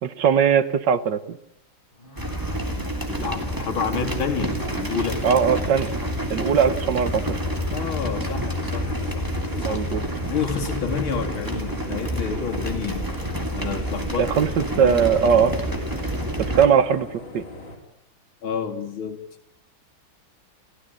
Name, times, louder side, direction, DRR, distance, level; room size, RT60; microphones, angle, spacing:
voice 1, 0.0-1.4 5.2-5.9 6.3-7.4 9.6-10.1 14.2-15.5 16.4-17.4, right 7 dB, 65° right, 1.7 m, -20 dB
sound 1, 1.9-2.7 3.9-4.4 5.3-5.8 6.8-7.4 8.1-8.2 8.5-9.1 9.9-10.5, left 1 dB, 25° left, 6.2 m, -45 dB
sound 2, 2.2-16.7, equal, 10° right, 2.9 m, -28 dB
voice 2, 3.1-5.3 7.7-9.3 9.5-9.8 10.3-13.1 13.5-14.3 14.7-15.0 18.4-19.2, left 6 dB, 90° left, 3.2 m, -29 dB
sound 3, 5.8-17.8, left 2 dB, 65° left, 5.1 m, -41 dB
30.0 x 15.0 x 9.0 m
omnidirectional pair, 2.2 m